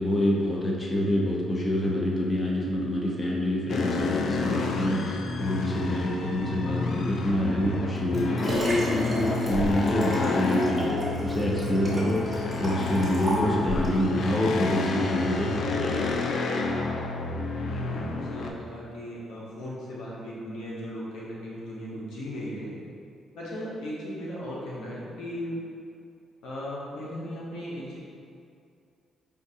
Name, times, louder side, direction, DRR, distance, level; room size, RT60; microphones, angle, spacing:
voice 1, 0.0-16.2, left 1 dB, 25° left, -3 dB, 0.7 m, -26 dB
sound 1, 3.7-18.5, left 3 dB, 60° left, 0.3 m, -30 dB
Liquid, 7.7-14.0 14.6-14.7, equal, 25° right, 1.1 m, -34 dB
voice 2, 17.6-22.8 23.3-25.6 26.4-28.0, equal, 85° left, -6 dB, 1.0 m, -37 dB
5.2 x 2.5 x 2.6 m, 2.4 s
cardioid pair, 90°, 0 cm